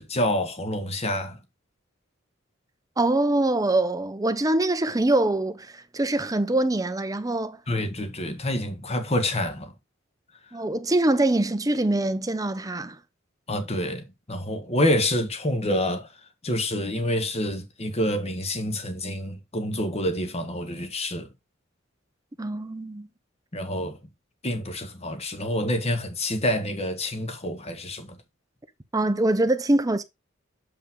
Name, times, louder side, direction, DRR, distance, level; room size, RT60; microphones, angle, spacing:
voice 1, 0.0-1.4 7.7-9.7 13.5-16.1 16.4-21.3 23.5-24.0 24.4-28.2, left 1 dB, 30° left, 1.5 m, -27 dB
voice 2, 3.0-7.6 10.5-13.0 22.4-23.1 28.9-30.0, right 2 dB, 20° right, 0.7 m, -24 dB
7.2 x 5.4 x 3.6 m
head